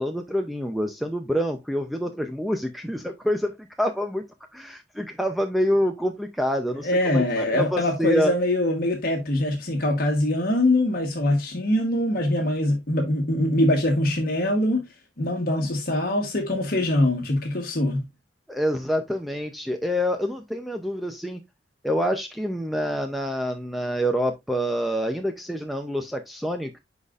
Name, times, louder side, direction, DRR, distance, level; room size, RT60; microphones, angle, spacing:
voice 1, 0.0-4.2 4.5-8.4 18.5-21.4 21.8-26.8, equal, ahead, 0.5 m, -27 dB
voice 2, 6.8-14.8 15.2-18.1, left 1 dB, 50° left, 1.2 m, -23 dB
10.5 x 4.1 x 2.4 m
head